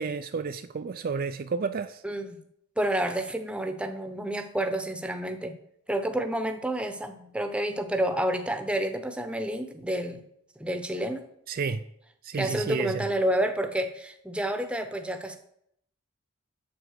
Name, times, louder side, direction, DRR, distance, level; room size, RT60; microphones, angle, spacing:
voice 1, 0.0-2.0 11.5-11.8 12.2-13.1, right 5 dB, 45° right, 0.4 m, -31 dB
voice 2, 2.0-2.4 2.8-5.5 5.9-10.2 10.6-11.3 12.4-15.4, right 1 dB, 5° right, 0.9 m, -29 dB
7.9 x 7.3 x 6.6 m
head